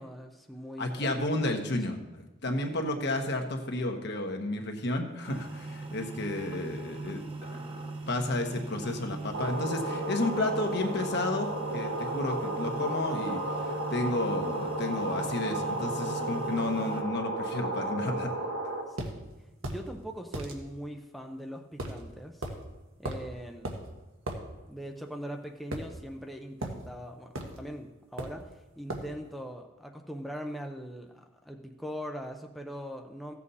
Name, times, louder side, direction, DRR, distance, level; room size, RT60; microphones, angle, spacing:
voice 1, 0.0-1.7 2.4-2.5 18.9-19.3 19.6-22.5 23.0-23.8 24.6-28.5 28.8-33.3, equal, ahead, 2 dB, 0.6 m, -41 dB
voice 2, 0.8-7.6 8.1-11.5 11.7-18.3, left 2 dB, 60° left, 4 dB, 1.3 m, -32 dB
sound 1, 5.2-17.0, right 2 dB, 25° right, 1.0 m, -40 dB
sound 2, 9.3-18.8, right 1 dB, 65° right, 1.4 m, -33 dB
sound 3, 19.0-19.1 19.6-19.8 20.3-20.5 21.8-22.0 22.4-22.6 23.0-23.3 23.6-23.8 24.3-24.4 25.7-26.3 26.6-26.8 27.3-27.6 28.2-28.4 28.9-29.1, right 1 dB, 90° right, 1.5 m, -36 dB
15.0 x 7.3 x 4.1 m, 1.0 s
head